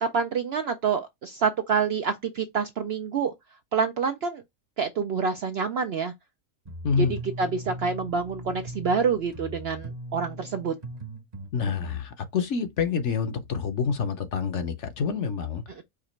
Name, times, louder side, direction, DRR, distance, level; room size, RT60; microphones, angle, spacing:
voice 1, 0.0-3.3 3.7-4.4 4.8-6.1 7.0-10.7 15.8-15.9, right 5 dB, 65° right, 0.6 m, -27 dB
sound 1, 6.7-12.0, right 1 dB, 35° right, 0.9 m, -40 dB
voice 2, 6.8-7.2 11.5-15.6, left 6 dB, 60° left, 1.0 m, -27 dB
5.0 x 2.4 x 4.3 m
omnidirectional pair, 1.5 m